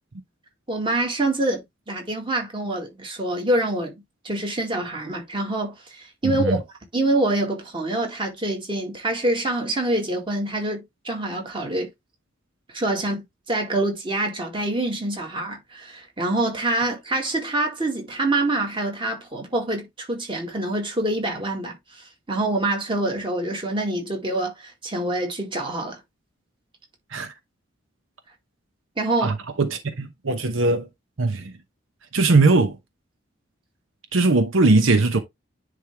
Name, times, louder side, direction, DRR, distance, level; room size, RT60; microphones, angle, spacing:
voice 1, 0.7-3.9 4.2-6.6 6.9-11.9 12.7-26.0 29.0-29.4, right 2 dB, 25° right, 2.1 m, -26 dB
voice 2, 6.2-6.6 27.1-27.3 29.2-30.9 31.2-31.5 32.1-32.8 34.1-35.2, right 3 dB, 80° right, 0.9 m, -20 dB
10.0 x 3.4 x 3.3 m
head